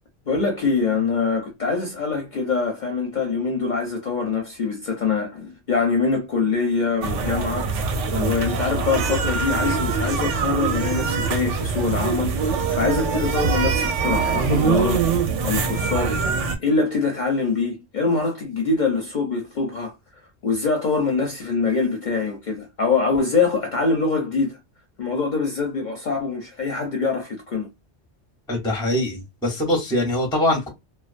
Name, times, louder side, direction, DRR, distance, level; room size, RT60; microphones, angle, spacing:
voice 1, 0.3-7.7 8.1-12.3 12.7-15.1 15.4-19.9 20.4-24.6 25.0-27.7, left 4 dB, 55° left, 0.6 m, -24 dB
sound 1, 7.0-16.6, right 5 dB, 90° right, 0.9 m, -23 dB
voice 2, 28.5-30.7, left 1 dB, 5° left, 0.4 m, -23 dB
2.3 x 2.2 x 2.4 m
omnidirectional pair, 1.2 m